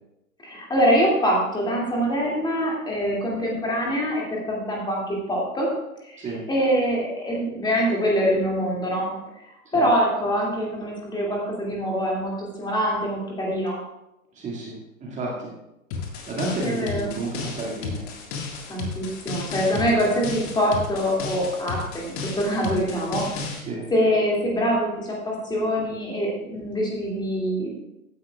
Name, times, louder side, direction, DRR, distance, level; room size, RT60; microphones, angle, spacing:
voice 1, 0.4-5.7 6.0-9.1 9.7-13.8 16.6-17.1 18.7-23.5 23.9-27.7, equal, 10° left, -3 dB, 2.4 m, -24 dB
voice 2, 14.4-15.5 16.3-18.0 19.7-19.9 23.7-23.9, right 2 dB, 15° right, -3 dB, 2.1 m, -31 dB
sound 1, 15.9-23.6, left 5 dB, 35° left, 1.8 m, -33 dB
15.0 x 10.5 x 2.4 m, 0.89 s
figure-of-eight pair, 110°, 42 cm